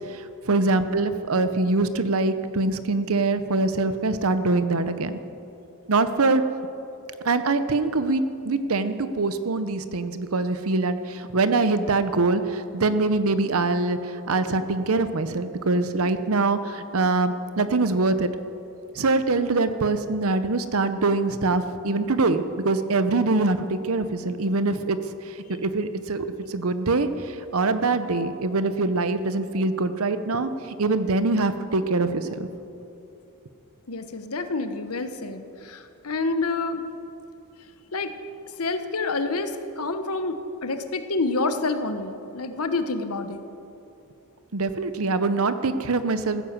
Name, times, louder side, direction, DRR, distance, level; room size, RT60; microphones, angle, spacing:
voice 1, 0.1-5.2 5.9-6.4 7.2-18.3 18.9-25.0 25.3-32.5 44.5-46.4, right 3 dB, 70° right, 11 dB, 0.8 m, -24 dB
voice 2, 33.9-36.8 37.9-38.1 38.5-43.4, left 3 dB, 75° left, 9 dB, 1.1 m, -28 dB
15.5 x 9.7 x 7.3 m, 2.8 s
head